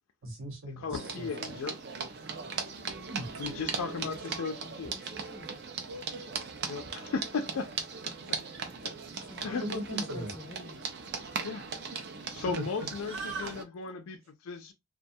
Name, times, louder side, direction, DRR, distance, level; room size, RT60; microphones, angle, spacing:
voice 1, 0.2-1.3 3.1-3.3 5.9-6.5 9.4-10.3 12.5-12.7 13.1-13.5 13.8-13.9, right 1 dB, 70° right, 0.9 m, -38 dB
voice 2, 0.8-1.8 3.4-4.9 6.7-7.7 8.0-8.4 8.8-8.9 9.4-9.6 11.4-11.7 12.3-14.7, left 5 dB, 85° left, 0.4 m, -36 dB
sound 1, 0.9-13.6, right 5 dB, 50° right, 0.4 m, -39 dB
voice 3, 3.9-5.6 9.1-10.8 11.9-12.3, left 1 dB, 20° left, 0.3 m, -48 dB
2.3 x 2.2 x 2.6 m
head